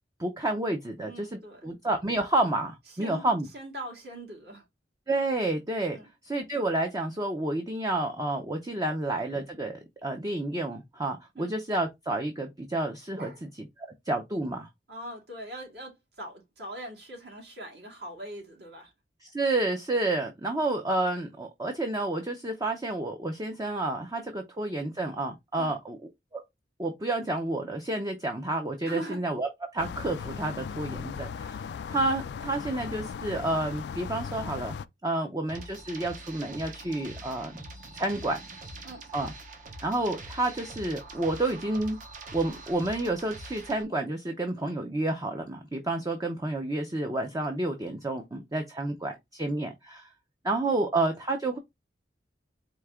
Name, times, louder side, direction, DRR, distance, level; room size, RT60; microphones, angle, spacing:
voice 1, 0.2-3.5 5.1-6.0 6.2-14.7 19.3-26.0 26.3-26.4 26.8-34.7 35.0-37.5 37.9-38.4 39.1-39.3 39.8-42.0 42.3-50.1 50.4-51.6, right 2 dB, 20° right, 0.6 m, -30 dB
voice 2, 1.1-1.6 3.0-4.6 5.9-6.1 11.4-11.5 13.1-13.4 14.9-18.9 25.6-25.8 28.8-29.2 38.8-39.1, right 1 dB, 65° right, 2.3 m, -41 dB
sound 1, 29.8-34.9, left 6 dB, 65° left, 0.3 m, -37 dB
sound 2, 35.5-43.8, right 2 dB, 45° right, 0.9 m, -44 dB
4.6 x 2.8 x 3.5 m
head